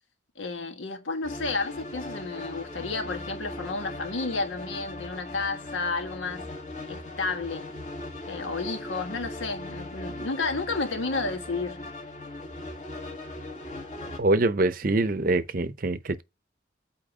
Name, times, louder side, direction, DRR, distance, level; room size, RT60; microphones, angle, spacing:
voice 1, 0.3-6.5 6.9-7.7 8.3-11.9, left 3 dB, 85° left, 1.5 m, -31 dB
sound 1, 1.2-14.2, left 1 dB, 40° left, 2.0 m, -39 dB
voice 2, 14.2-16.2, right 2 dB, 45° right, 0.7 m, -24 dB
8.5 x 2.9 x 4.8 m
head